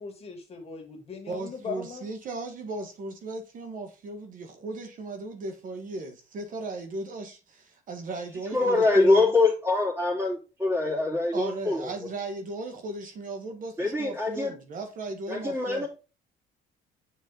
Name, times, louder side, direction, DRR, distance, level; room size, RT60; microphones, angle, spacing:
voice 1, 0.0-2.1, left 6 dB, 35° left, 2.1 m, -39 dB
voice 2, 1.3-9.3 11.3-15.9, right 3 dB, 50° right, 1.5 m, -37 dB
voice 3, 8.5-11.9 13.8-14.5 15.3-15.9, left 3 dB, 15° right, 3.5 m, -24 dB
7.0 x 4.8 x 3.7 m
cardioid pair, 110°, 17 cm